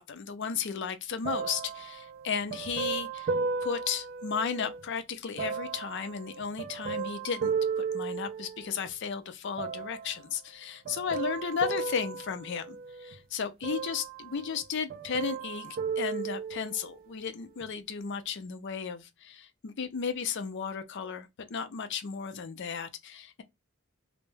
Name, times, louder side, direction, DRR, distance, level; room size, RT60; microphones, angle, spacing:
voice 1, 0.0-3.3 3.6-23.4, left 6 dB, 60° left, 0.5 m, -34 dB
sound 1, 1.2-4.8 5.4-8.9 9.6-10.2 10.9-13.2 13.6-14.6 14.9-17.0 17.6-17.7, right 5 dB, 45° right, 0.3 m, -35 dB
2.2 x 2.0 x 3.1 m
head